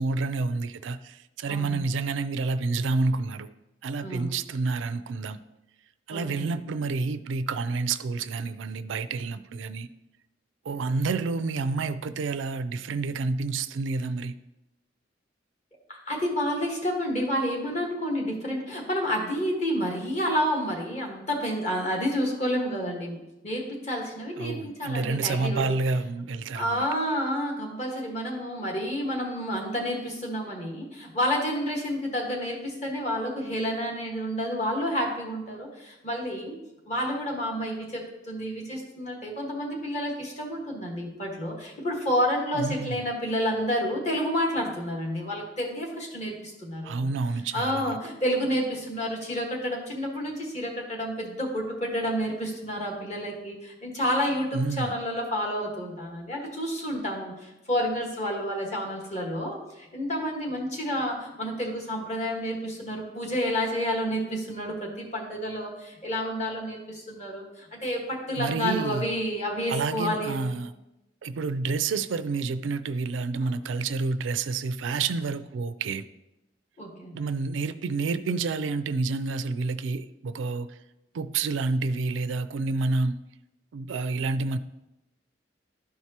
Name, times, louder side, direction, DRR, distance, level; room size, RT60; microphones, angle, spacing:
voice 1, 0.0-3.5 3.8-5.4 6.1-9.9 10.7-14.3 24.4-26.9 42.5-43.0 46.8-48.0 54.5-55.0 68.4-69.1 69.7-70.7 71.2-76.0 77.1-80.8 81.1-83.2 83.7-84.6, right 3 dB, 90° right, 0.4 m, -29 dB
voice 2, 1.5-1.8 4.0-4.3 6.1-6.6 15.9-23.2 23.4-25.6 26.5-36.6 36.8-47.0 47.5-70.5 73.4-73.5 76.8-77.2, equal, 40° left, 1.5 m, -30 dB
12.0 x 4.6 x 2.9 m
head